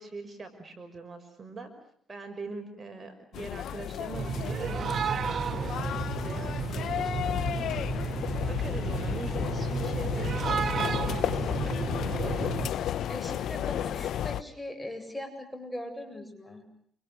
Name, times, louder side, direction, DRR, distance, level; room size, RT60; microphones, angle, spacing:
voice 1, 0.0-1.7 2.1-7.7 7.9-8.1 8.5-12.7, right 3 dB, 30° right, 6 dB, 6.0 m, -43 dB
sound 1, 3.3-14.4, left 10 dB, 75° left, 1.1 m, -32 dB
sound 2, 4.1-12.7, right 6 dB, 55° right, 1.0 m, -32 dB
voice 2, 13.1-16.6, left 1 dB, 10° left, 6 dB, 7.9 m, -40 dB
29.0 x 27.5 x 6.5 m, 0.65 s
cardioid pair, 90°, 0 cm